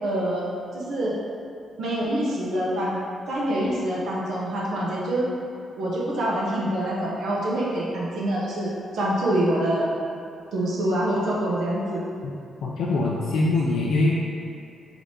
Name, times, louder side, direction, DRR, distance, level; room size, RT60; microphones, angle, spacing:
voice 1, 0.0-1.2 1.8-3.0 3.3-5.3 5.8-9.9 10.5-12.0, right 1 dB, 75° right, -5 dB, 0.7 m, -25 dB
voice 2, 12.6-14.1, left 2 dB, 80° left, -4 dB, 0.4 m, -23 dB
4.9 x 3.4 x 2.7 m, 2.5 s
cardioid pair, 75°, 0 cm